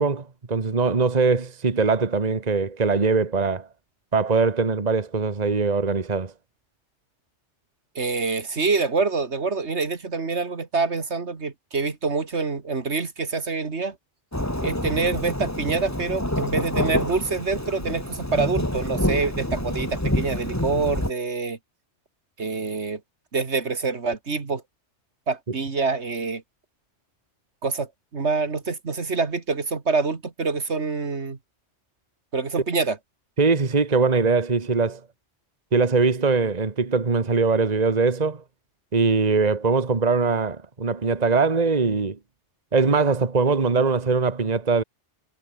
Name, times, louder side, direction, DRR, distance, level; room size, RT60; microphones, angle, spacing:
voice 1, 0.0-3.7 4.1-6.3 33.4-35.0 35.7-38.4 38.9-42.2 42.7-44.8, right 4 dB, 35° right, 1.6 m, -21 dB
voice 2, 8.0-14.0 14.6-21.6 22.4-23.0 23.3-24.6 25.3-26.4 27.6-31.4 32.3-33.0, right 4 dB, 70° right, 2.3 m, -26 dB
Thunderstorm / Rain, 14.3-21.1, left 1 dB, 15° left, 3.6 m, -27 dB
omnidirectional pair, 1.2 m